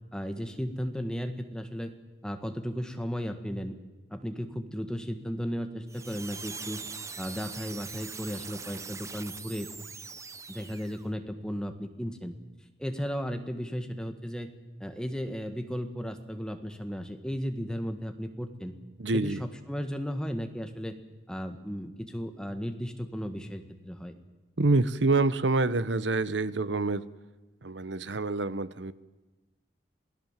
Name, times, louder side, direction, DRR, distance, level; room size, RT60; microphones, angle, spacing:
voice 1, 0.1-1.9 2.2-3.7 4.1-6.8 7.2-9.7 10.5-12.3 12.8-14.5 14.8-18.7 19.1-20.9 21.3-24.1, equal, 5° left, 6 dB, 1.7 m, -35 dB
sound 1, 5.9-11.1, right 5 dB, 15° right, 0.8 m, -42 dB
voice 2, 19.0-19.4 24.6-27.1 27.6-28.9, right 3 dB, 75° right, 16 dB, 1.0 m, -26 dB
27.0 x 18.0 x 7.5 m, 1.2 s
head